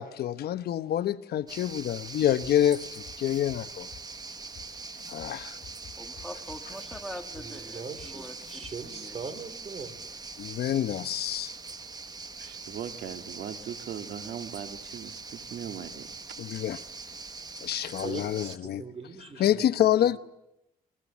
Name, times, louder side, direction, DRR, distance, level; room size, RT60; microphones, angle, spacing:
voice 1, 0.0-3.9 5.1-5.6 10.4-11.5 16.4-16.8 17.6-18.8 19.4-20.2, left 11 dB, 80° left, 0.9 m, -27 dB
sound 1, 1.5-18.6, right 4 dB, 25° right, 1.2 m, -42 dB
sound 2, 2.4-2.5 3.0-3.6 3.9-4.0 4.5-4.6 4.9-5.3 5.6-7.0 7.3-7.4 8.0-8.1 8.3-8.7, left 8 dB, 60° left, 4.5 m, -49 dB
voice 2, 6.0-9.2, equal, ahead, 2.0 m, -43 dB
voice 3, 7.4-10.0 18.0-19.9, right 5 dB, 40° right, 3.2 m, -41 dB
voice 4, 12.4-16.2 17.7-18.0, right 8 dB, 85° right, 2.0 m, -40 dB
28.5 x 21.5 x 7.3 m
cardioid pair, 125°, 16 cm